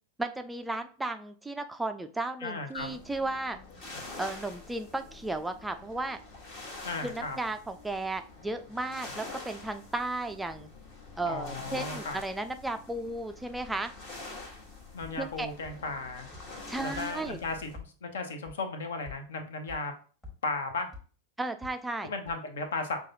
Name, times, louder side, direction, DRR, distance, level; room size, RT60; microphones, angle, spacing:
voice 1, 0.2-3.6 4.2-6.2 7.0-10.7 11.2-13.9 15.2-15.5 16.7-17.4 21.4-22.1, right 2 dB, 5° right, 7 dB, 0.3 m, -34 dB
voice 2, 2.4-3.0 6.8-7.4 11.2-12.2 14.9-16.3 16.8-19.9 20.4-20.9 22.0-23.0, left 3 dB, 60° left, 7 dB, 0.7 m, -35 dB
sound 1, 2.7-17.8, left 3 dB, 40° left, 1.2 m, -46 dB
sound 2, 15.0-15.1 15.6-15.7 16.3-16.4 16.9-17.0 17.4-17.9 18.4-18.5 19.1-19.2 19.7-19.8 20.2-20.3 20.9-21.0 21.6-21.7 22.3-22.4, left 4 dB, 20° left, 1.4 m, -44 dB
6.1 x 2.3 x 2.7 m, 0.40 s
figure-of-eight pair, 90°, 0 cm